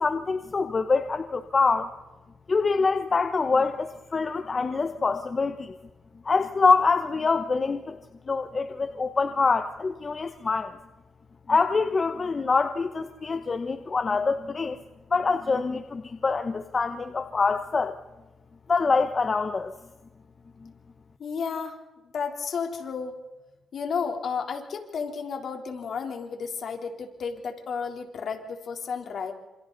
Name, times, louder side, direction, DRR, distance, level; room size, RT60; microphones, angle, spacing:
voice 1, 0.0-1.9 2.5-5.7 6.2-8.0 8.3-10.8 11.5-14.8 15.1-18.0 18.7-19.7 20.6-20.7, left 4 dB, 35° left, 8 dB, 1.1 m, -25 dB
voice 2, 21.2-21.8 22.1-23.2 23.7-29.3, left 6 dB, 60° left, 3 dB, 3.6 m, -32 dB
28.5 x 27.0 x 4.1 m, 1.1 s
cardioid pair, 115°, 0 cm